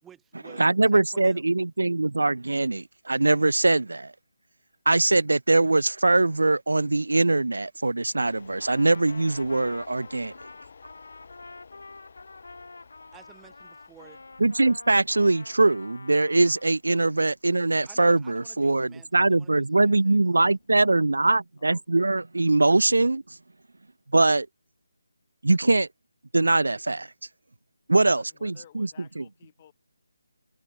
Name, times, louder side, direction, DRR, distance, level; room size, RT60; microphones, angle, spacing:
voice 1, 0.0-1.4 13.1-14.2 17.9-20.2, right 9 dB, 10° right, 3.7 m, -53 dB
voice 2, 0.6-4.1 4.9-10.3 14.4-23.2 24.1-24.5 25.4-25.9 26.3-27.1 27.9-28.9 29.2-29.3, right 2 dB, 75° right, 0.3 m, -22 dB
sound 1, 8.1-21.2, left 5 dB, 50° left, 1.1 m, -53 dB
Trumpet, 8.6-16.7, left 3 dB, 70° left, 4.3 m, -47 dB
voice 3, 28.1-29.7, left 11 dB, 30° left, 2.7 m, -53 dB
figure-of-eight pair, 155°, 0 cm